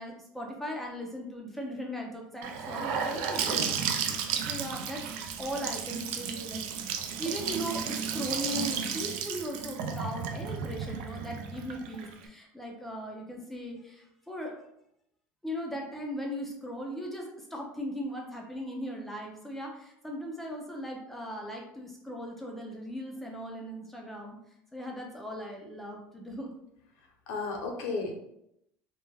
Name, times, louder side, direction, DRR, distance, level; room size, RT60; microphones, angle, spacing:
voice 1, 0.0-3.8 4.5-5.0 5.4-6.7 7.2-14.6 15.4-24.4 24.7-26.5, equal, 5° left, 0 dB, 0.4 m, -38 dB
Gurgling / Sink (filling or washing) / Bathtub (filling or washing), 2.4-12.2, right 7 dB, 75° right, 0.3 m, -33 dB
voice 2, 26.9-28.1, left 3 dB, 70° left, 1 dB, 0.7 m, -34 dB
2.2 x 2.1 x 3.2 m, 0.79 s
cardioid pair, 150°, 5 cm